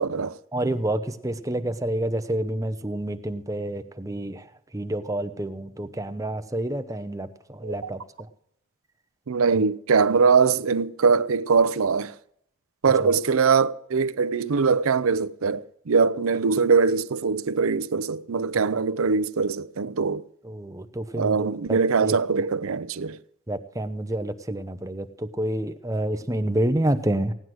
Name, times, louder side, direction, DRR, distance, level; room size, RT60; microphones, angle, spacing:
voice 1, 0.0-0.4 7.6-7.9 9.3-12.1 12.8-20.2 21.1-23.2, right 5 dB, 80° right, 0.6 m, -22 dB
voice 2, 0.5-4.4 4.7-8.0 9.5-9.6 13.0-13.1 20.4-21.4 21.7-21.8 23.5-27.3, right 1 dB, 15° right, 0.7 m, -28 dB
17.0 x 9.5 x 6.2 m
head